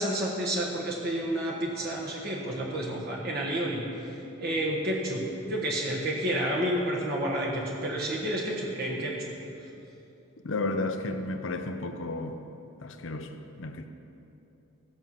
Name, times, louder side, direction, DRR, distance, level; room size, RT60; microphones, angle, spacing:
voice 1, 0.0-4.1 4.4-9.3, right 1 dB, 45° right, -3 dB, 1.4 m, -30 dB
voice 2, 10.4-12.4 12.8-13.9, left 2 dB, 65° left, 7 dB, 0.7 m, -33 dB
15.0 x 5.5 x 7.5 m, 2.9 s
head